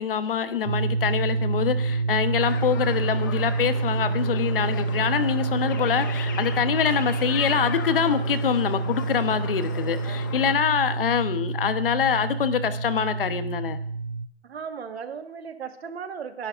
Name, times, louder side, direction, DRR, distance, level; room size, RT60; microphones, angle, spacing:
voice 1, 0.0-13.8, left 8 dB, 55° left, 11 dB, 1.0 m, -25 dB
sound 1, 0.7-14.3, right 4 dB, 40° right, 0.5 m, -28 dB
sound 2, 2.4-10.5, left 6 dB, 20° left, 0.5 m, -37 dB
voice 2, 14.4-16.5, right 6 dB, 65° right, 7 dB, 1.6 m, -36 dB
29.5 x 11.5 x 2.5 m, 0.63 s
hypercardioid pair, 170°, 33 cm